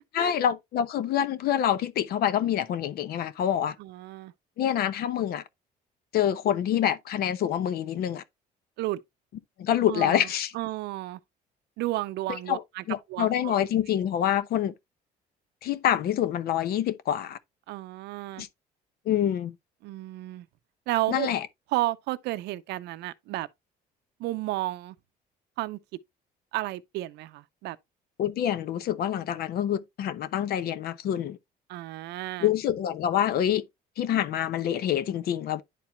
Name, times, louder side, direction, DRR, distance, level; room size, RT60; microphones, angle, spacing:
voice 1, 0.1-3.7 4.6-5.4 6.1-8.2 9.6-10.5 12.5-12.6 12.9-14.7 15.6-17.4 18.4-18.5 19.1-19.6 21.1-21.5 28.2-31.4 32.4-33.6 34.0-35.6, left 10 dB, 65° left, 0.7 m, -26 dB
voice 2, 3.8-4.3 8.8-9.0 9.9-10.3 10.5-11.2 11.8-12.8 13.1-13.5 17.7-18.5 19.8-20.5 20.9-21.3 21.7-23.5 24.2-24.9 25.6-25.8 26.5-27.8 31.7-32.5, right 17 dB, 85° right, 0.6 m, -32 dB
11.0 x 4.3 x 2.3 m
cardioid pair, 110°, 17 cm